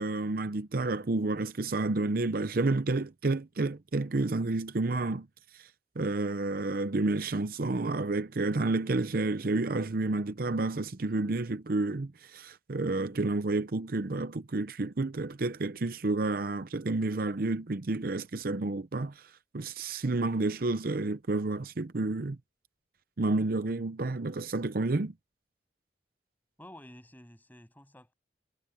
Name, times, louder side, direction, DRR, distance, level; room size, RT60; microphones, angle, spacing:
voice 1, 0.0-5.3 5.5-5.7 6.0-19.3 19.5-22.4 23.2-25.1, right 2 dB, 55° right, 0.7 m, -30 dB
voice 2, 26.6-28.1, left 1 dB, 10° left, 7.9 m, -51 dB
head